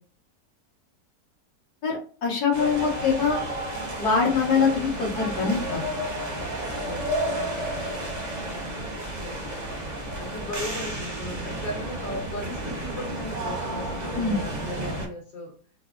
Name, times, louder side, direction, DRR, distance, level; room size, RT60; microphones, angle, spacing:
voice 1, 1.8-3.4 4.0-5.9 14.2-14.4, left 5 dB, 60° left, -4 dB, 1.8 m, -24 dB
sound 1, 2.5-15.1, right 1 dB, 35° right, 0.7 m, -32 dB
voice 2, 6.9-7.3 9.1-9.5 10.2-15.5, left 1 dB, 85° left, -3 dB, 1.6 m, -37 dB
4.6 x 2.0 x 2.4 m, 0.41 s
omnidirectional pair, 1.9 m